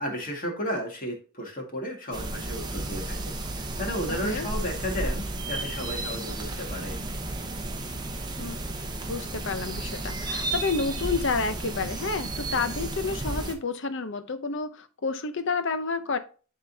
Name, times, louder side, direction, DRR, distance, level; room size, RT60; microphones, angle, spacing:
voice 1, 0.0-7.0, equal, 40° left, 1 dB, 2.0 m, -33 dB
sound 1, 2.1-13.5, right 2 dB, 20° right, 0.8 m, -33 dB
voice 2, 9.1-16.2, left 4 dB, 55° left, 10 dB, 0.7 m, -30 dB
11.0 x 3.8 x 2.7 m, 0.37 s
head